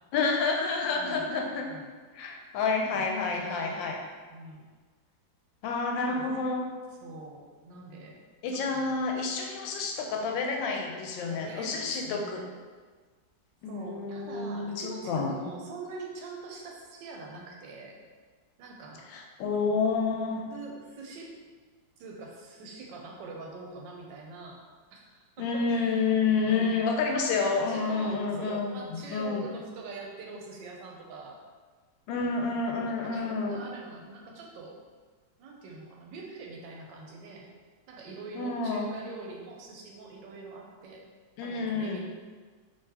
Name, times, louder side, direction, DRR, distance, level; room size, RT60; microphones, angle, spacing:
voice 1, 0.1-1.8 2.1-4.0 5.6-6.7 8.4-12.4 13.6-15.3 19.1-20.5 25.4-29.5 32.1-33.6 38.3-38.9 41.4-42.0, left 4 dB, 85° left, 2 dB, 1.3 m, -29 dB
voice 2, 1.0-1.3 1.6-1.9 2.9-4.0 4.3-4.7 6.0-6.5 7.0-8.2 8.5-9.0 11.2-12.5 13.7-18.0 18.6-19.1 20.5-21.3 22.0-24.6 24.9-26.1 26.4-26.8 27.3-31.4 32.1-32.3 32.9-34.9 35.4-37.5 37.9-41.0 41.4-42.0, right 3 dB, 80° right, 0 dB, 1.3 m, -44 dB
3.7 x 3.1 x 2.8 m, 1.4 s
omnidirectional pair, 2.0 m